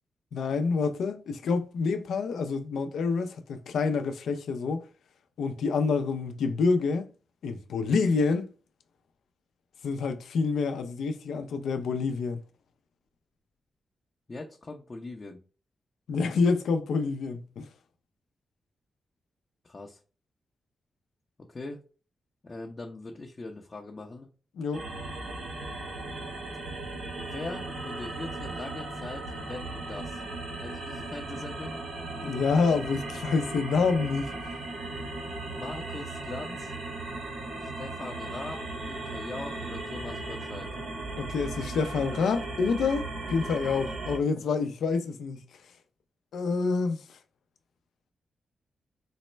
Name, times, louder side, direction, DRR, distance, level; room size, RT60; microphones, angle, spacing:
voice 1, 0.3-4.9 5.4-7.1 7.4-8.5 9.8-12.4 16.1-17.7 24.6-24.8 32.2-34.3 41.2-45.4 46.3-47.2, left 4 dB, 85° left, 0.4 m, -27 dB
voice 2, 14.3-15.4 19.6-20.0 21.4-21.8 22.4-24.3 27.2-30.2 30.6-31.8 35.5-36.7 37.6-40.7, left 2 dB, 40° left, 0.6 m, -41 dB
sound 1, 24.7-44.2, right 2 dB, 80° right, 0.9 m, -37 dB
4.0 x 2.1 x 3.2 m
cardioid pair, 70°, 0 cm